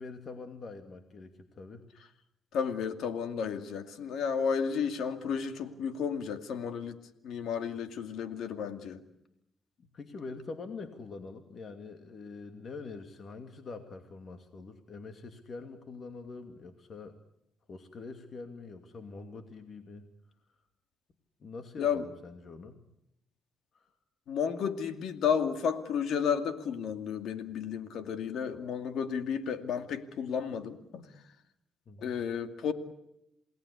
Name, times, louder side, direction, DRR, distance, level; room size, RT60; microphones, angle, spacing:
voice 1, 0.0-1.9 9.9-17.2 17.7-20.1 21.4-22.8 23.7-23.9 31.9-32.2, left 4 dB, 50° left, 6 dB, 2.6 m, -44 dB
voice 2, 2.5-7.0 7.2-9.0 21.8-22.1 24.3-31.1 32.0-32.7, left 7 dB, 75° left, 8 dB, 2.4 m, -32 dB
28.5 x 19.0 x 8.3 m, 0.83 s
cardioid pair, 90°, 0 cm